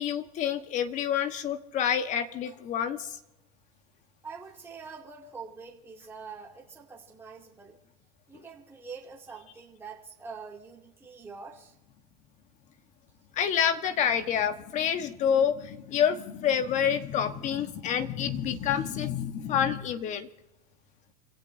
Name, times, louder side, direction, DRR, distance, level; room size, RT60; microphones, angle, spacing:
voice 1, 0.0-3.0 13.3-20.3, left 8 dB, 35° left, 9 dB, 1.3 m, -28 dB
voice 2, 4.2-7.8 8.3-11.7, right 5 dB, 10° right, -3 dB, 2.6 m, -45 dB
29.0 x 17.0 x 2.7 m, 0.91 s
supercardioid pair, 130°, 21 cm